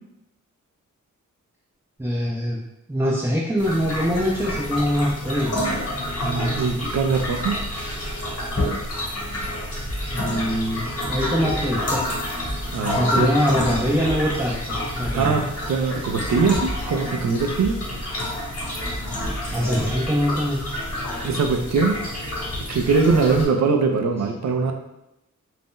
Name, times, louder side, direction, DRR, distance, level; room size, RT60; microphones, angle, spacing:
voice 1, 2.0-2.6 2.9-5.5 10.1-10.8 11.1-12.0 13.0-15.3 19.5-20.6, equal, 10° right, -5 dB, 0.5 m, -23 dB
sound 1, 3.6-23.4, left 1 dB, 50° left, 1.2 m, -29 dB
voice 2, 6.2-7.6 12.7-13.3 15.1-17.8 21.2-22.0 22.7-24.7, right 4 dB, 60° right, 5 dB, 0.5 m, -22 dB
sound 2, 9.9-10.5 11.0-12.1 12.4-13.1 13.6-15.6 16.2-17.2 17.6-18.2 18.8-20.2, equal, 25° right, 0.9 m, -36 dB
2.6 x 2.0 x 3.6 m, 0.89 s
cardioid pair, 55°, 32 cm